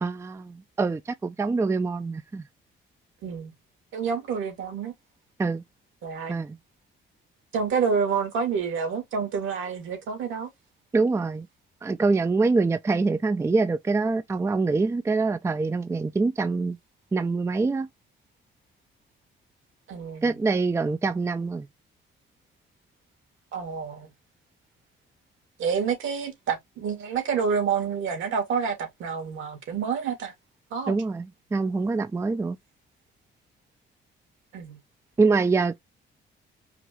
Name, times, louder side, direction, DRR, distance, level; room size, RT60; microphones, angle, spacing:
voice 1, 0.0-2.4 5.4-5.6 6.3-6.6 10.9-11.5 11.8-16.8 17.1-17.9 20.2-21.7 30.9-32.6 35.2-35.8, right 3 dB, 15° right, 0.4 m, -25 dB
voice 2, 3.2-3.5 3.9-4.9 6.0-6.3 7.5-10.5 19.9-20.4 23.5-24.1 25.6-30.3 30.7-31.0 34.5-34.8, right 6 dB, 75° right, 2.3 m, -28 dB
4.9 x 2.5 x 3.1 m
cardioid pair, 90°, 20 cm